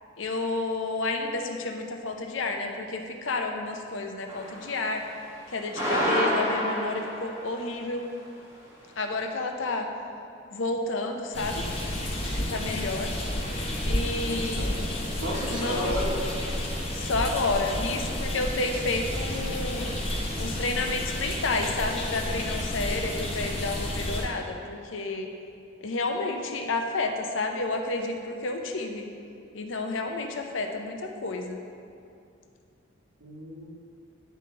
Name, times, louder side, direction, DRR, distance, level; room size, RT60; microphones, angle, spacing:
voice 1, 0.2-5.0 5.5-8.0 9.0-9.9 10.5-11.6 12.2-13.1 13.8-14.9 15.5-15.9 16.9-20.0 20.4-25.3 25.8-29.1 29.5-31.6, left 3 dB, 70° left, 4 dB, 0.6 m, -30 dB
sound 1, 4.3-4.6 5.8-7.5, equal, 15° right, 1.3 m, -27 dB
sound 2, 11.3-24.2, left 1 dB, 30° left, 0.9 m, -31 dB
voice 2, 13.9-14.8 15.1-16.3 33.2-33.7, equal, 60° right, -3 dB, 1.3 m, -34 dB
10.0 x 3.9 x 3.7 m, 2.5 s
head